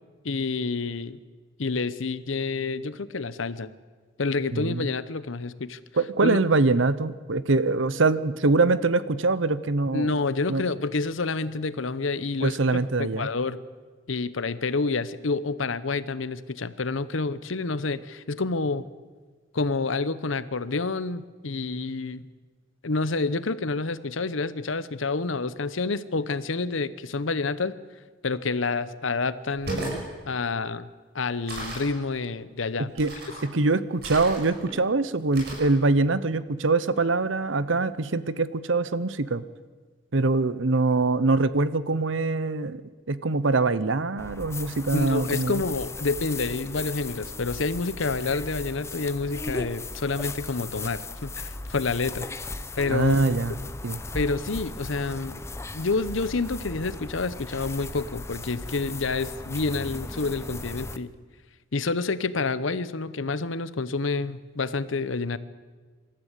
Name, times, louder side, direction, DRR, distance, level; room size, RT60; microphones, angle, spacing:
voice 1, 0.2-1.2 1.6-3.7 4.2-5.8 6.2-6.4 9.9-12.6 13.0-13.6 14.1-18.9 19.5-22.3 22.8-27.7 28.2-30.9 31.1-32.9 44.9-52.3 52.8-53.2 54.1-55.4 55.7-61.1 61.7-65.4, left 3 dB, 80° left, 15 dB, 0.9 m, -28 dB
voice 2, 4.5-4.9 6.0-10.1 10.5-10.6 12.4-13.3 32.8-33.1 33.4-39.4 40.1-42.8 43.1-45.6 52.9-53.5 53.8-54.0, right 3 dB, 75° right, 16 dB, 0.9 m, -23 dB
sound 1, 29.5-30.0 31.5-31.9 33.0-33.5 34.0-34.7 35.3-35.7, right 2 dB, 55° right, 6.4 m, -34 dB
sound 2, 44.2-61.0, left 3 dB, 15° left, 0.7 m, -37 dB
26.5 x 13.5 x 8.3 m, 1.4 s
head